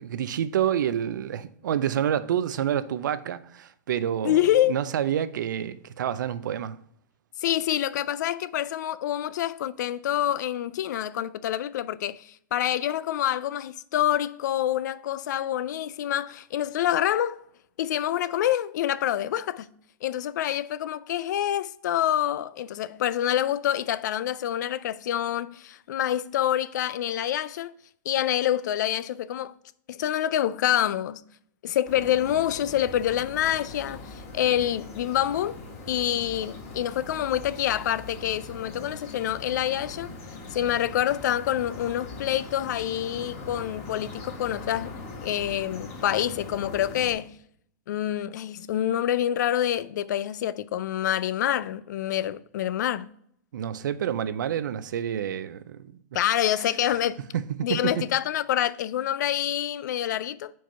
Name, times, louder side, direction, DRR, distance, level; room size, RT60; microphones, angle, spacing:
voice 1, 0.0-4.4 4.7-6.8 53.5-56.2 56.8-57.0 57.3-58.0, right 9 dB, 85° right, 0.5 m, -28 dB
voice 2, 4.2-4.7 7.4-17.4 17.8-19.7 20.0-27.7 28.1-29.5 29.9-31.2 31.6-35.6 35.9-40.1 40.5-44.9 45.2-47.4 47.9-53.1 56.1-57.3 57.6-60.5, left 11 dB, 75° left, 0.4 m, -27 dB
sound 1, 31.8-47.1, left 3 dB, 50° left, 1.8 m, -41 dB
4.6 x 4.6 x 5.3 m
supercardioid pair, 150°, 10 cm